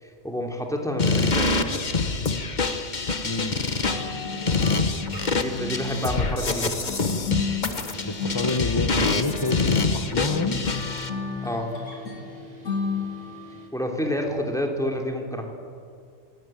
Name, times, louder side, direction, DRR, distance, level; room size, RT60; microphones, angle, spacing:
voice 1, 0.0-1.6 5.3-6.9 11.4-11.8 13.7-15.5, equal, ahead, 1 dB, 3.0 m, -29 dB
sound 1, 1.0-11.1, left 3 dB, 40° left, 1.2 m, -26 dB
voice 2, 3.2-3.6 8.0-10.6, left 3 dB, 20° left, 7 dB, 0.9 m, -28 dB
sound 2, 3.8-13.5, left 4 dB, 85° left, 3.5 m, -33 dB
sound 3, 7.7-13.7, equal, 30° right, 2.7 m, -45 dB
25.0 x 17.5 x 9.0 m, 2.3 s
omnidirectional pair, 1.3 m